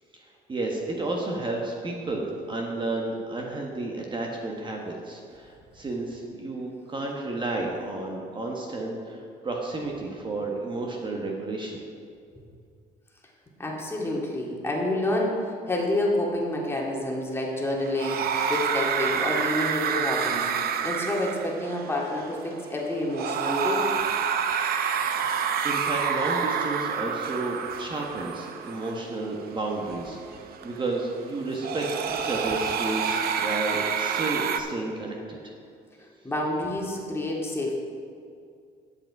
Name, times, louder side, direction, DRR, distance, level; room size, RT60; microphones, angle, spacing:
voice 1, 0.5-11.8 25.6-35.4, right 2 dB, 30° right, 0 dB, 1.3 m, -32 dB
voice 2, 13.6-20.5 20.8-23.8 36.2-37.8, left 1 dB, 15° left, -2 dB, 2.1 m, -28 dB
sound 1, 17.8-34.6, right 7 dB, 65° right, 0.7 m, -29 dB
10.0 x 8.1 x 4.7 m, 2.3 s
cardioid pair, 110°, 17 cm